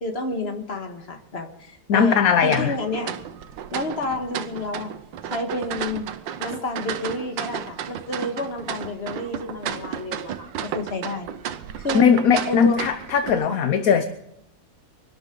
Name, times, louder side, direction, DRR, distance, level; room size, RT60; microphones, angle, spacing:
voice 1, 0.0-3.2 3.7-4.9 5.2-6.1 6.4-11.3 11.8-12.8 13.5-13.6, left 2 dB, 35° left, 1.9 m, -30 dB
voice 2, 1.9-2.7 11.9-14.0, left 7 dB, 60° left, 1.1 m, -19 dB
sound 1, 2.5-13.3, right 9 dB, 85° right, 1.5 m, -33 dB
24.0 x 12.5 x 3.9 m
omnidirectional pair, 2.0 m